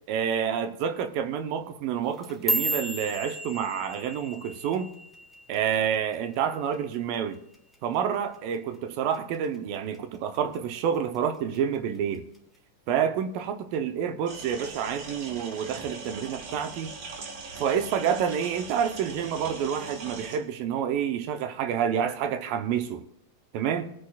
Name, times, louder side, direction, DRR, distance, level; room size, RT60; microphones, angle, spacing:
voice 1, 0.1-5.0 5.5-7.4 7.8-12.3 12.9-16.9 17.6-23.0 23.5-23.9, right 8 dB, 75° right, 2.4 m, -28 dB
sound 1, 2.0-6.4 6.7-7.1 7.5-7.9 8.3-8.5 9.1-9.5 9.9-10.8 11.1-11.6 12.3-12.4, right 1 dB, ahead, 1.1 m, -33 dB
sound 2, 14.3-20.4, right 4 dB, 55° right, 2.4 m, -40 dB
23.5 x 9.3 x 2.4 m
omnidirectional pair, 4.4 m